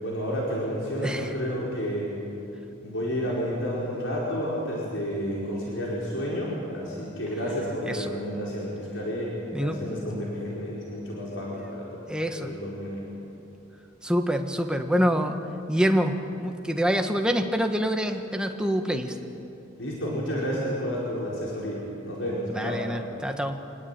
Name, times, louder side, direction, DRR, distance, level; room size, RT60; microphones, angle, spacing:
voice 1, 0.0-2.1 2.8-11.9 12.4-13.1 19.8-22.8, equal, 80° left, -5 dB, 4.8 m, -31 dB
voice 2, 1.0-1.3 7.8-8.1 9.5-9.8 12.1-12.5 14.0-15.4 15.7-19.1 22.5-23.6, equal, 5° right, 5 dB, 1.5 m, -26 dB
26.0 x 19.0 x 8.9 m, 2.8 s
head